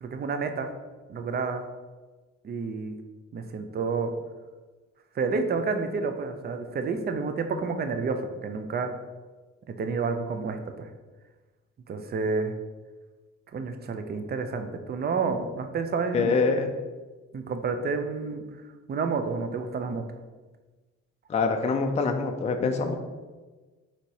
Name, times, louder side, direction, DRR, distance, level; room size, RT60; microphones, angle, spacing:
voice 1, 0.0-0.7 1.1-1.7 2.4-3.0 3.3-4.1 5.2-8.9 9.7-10.9 11.9-12.6 13.5-16.3 17.3-18.4 18.9-20.0, right 4 dB, 35° right, 7 dB, 0.5 m, -29 dB
voice 2, 16.1-16.7 21.3-23.0, left 4 dB, 25° left, 5 dB, 0.4 m, -25 dB
4.0 x 2.9 x 4.6 m, 1.3 s
cardioid pair, 90°, 30 cm